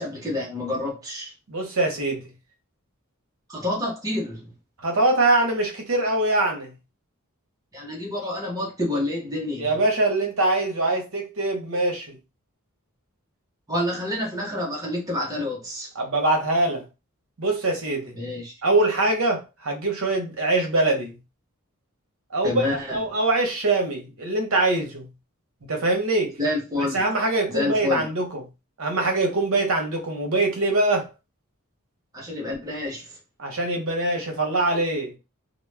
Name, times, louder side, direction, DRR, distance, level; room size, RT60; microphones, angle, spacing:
voice 1, 0.0-1.3 3.5-4.5 7.7-9.7 13.7-15.9 18.1-18.5 22.4-23.0 26.4-27.0 27.5-28.0 32.1-33.1, left 1 dB, 15° right, 0.9 m, -28 dB
voice 2, 1.5-2.3 4.8-6.7 9.6-12.2 16.0-16.8 17.4-18.1 18.6-21.1 22.3-25.1 25.7-26.4 26.8-28.4 28.8-31.1 33.4-35.1, right 2 dB, 70° right, 0.8 m, -23 dB
2.2 x 2.1 x 3.2 m
head